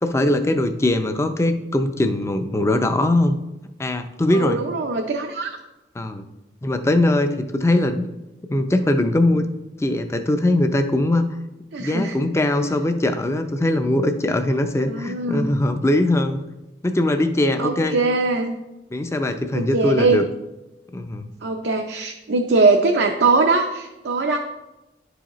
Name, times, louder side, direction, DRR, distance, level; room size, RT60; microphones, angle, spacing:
voice 1, 0.0-3.4 3.8-4.6 6.0-6.2 6.6-8.1 8.5-9.5 9.8-11.3 11.8-16.4 16.8-18.0 18.9-20.3 20.9-21.3, left 1 dB, 15° left, 7 dB, 0.4 m, -21 dB
voice 2, 4.3-5.6 11.7-12.2 14.9-15.5 17.6-18.6 19.5-20.2 21.4-24.4, right 3 dB, 80° right, 2 dB, 0.6 m, -21 dB
11.0 x 4.9 x 3.0 m, 0.99 s
head